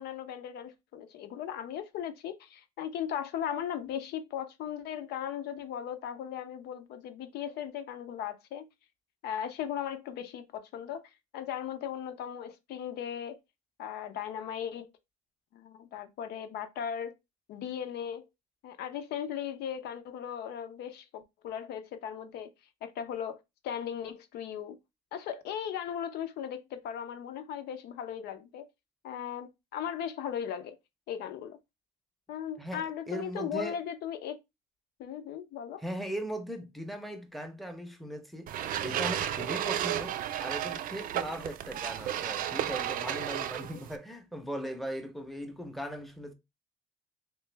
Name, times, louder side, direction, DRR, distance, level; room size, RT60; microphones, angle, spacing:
voice 1, 0.0-8.7 9.2-11.0 11.3-13.4 13.8-14.9 15.5-17.2 17.5-18.3 18.6-22.5 22.8-24.8 25.1-28.7 29.0-30.8 31.1-31.6 32.3-34.4 35.0-35.8, left 9 dB, 75° left, 0.7 m, -37 dB
voice 2, 32.6-33.8 35.8-38.5 38.8-46.3, equal, ahead, 0.7 m, -39 dB
sound 1, 38.5-44.0, right 11 dB, 55° right, 0.4 m, -33 dB
3.3 x 3.0 x 3.3 m
cardioid pair, 110°, 17 cm